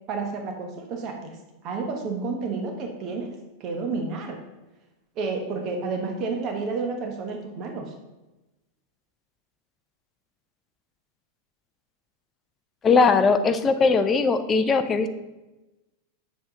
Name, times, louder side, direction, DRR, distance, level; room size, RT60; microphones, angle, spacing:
voice 1, 0.1-1.4 1.6-3.3 3.6-4.4 5.2-7.9, right 4 dB, 35° right, 2 dB, 1.1 m, -30 dB
voice 2, 12.8-15.1, left 4 dB, 20° left, 10 dB, 0.5 m, -20 dB
7.1 x 7.0 x 3.7 m, 1.0 s
figure-of-eight pair, 90°, 0 cm